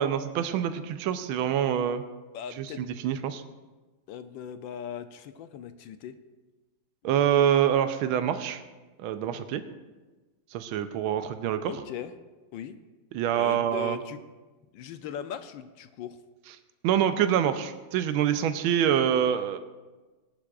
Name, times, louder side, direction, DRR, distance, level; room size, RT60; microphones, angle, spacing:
voice 1, 0.0-2.0 2.6-3.4 7.0-8.6 9.0-9.6 10.5-11.7 13.1-14.0 16.8-19.6, right 9 dB, 75° right, 9 dB, 1.5 m, -26 dB
voice 2, 2.3-2.9 4.1-6.2 11.7-12.1 12.5-12.8 13.3-14.2 14.7-16.2, left 8 dB, 75° left, 10 dB, 1.2 m, -39 dB
19.0 x 11.5 x 2.5 m, 1.2 s
omnidirectional pair, 2.4 m